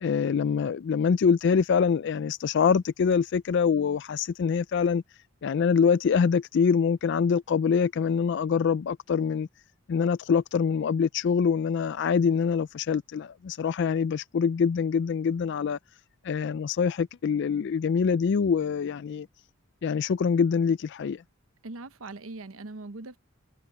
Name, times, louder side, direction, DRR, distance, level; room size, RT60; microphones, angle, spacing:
voice 1, 0.0-5.0 5.4-9.5 9.9-15.8 16.2-19.3 19.8-21.2, left 6 dB, 55° left, 0.4 m, -25 dB
voice 2, 21.6-23.2, right 2 dB, 80° right, 1.0 m, -40 dB
head